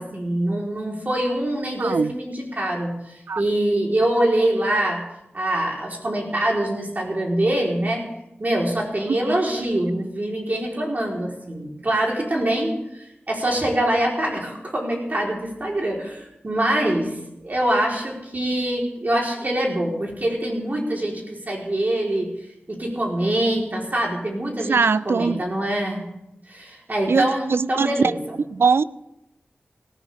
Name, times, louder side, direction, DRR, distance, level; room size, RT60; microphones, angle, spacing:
voice 1, 0.0-3.0 3.4-5.0 5.3-8.1 8.4-22.3 22.7-26.0 26.5-28.2, right 1 dB, 45° right, 4.2 m, -24 dB
voice 2, 1.8-2.1 3.3-3.4 9.1-9.4 24.7-25.4 27.1-28.1 28.5-28.8, right 5 dB, 80° right, 0.4 m, -21 dB
18.0 x 16.0 x 3.6 m
wide cardioid pair, 70°, 4 cm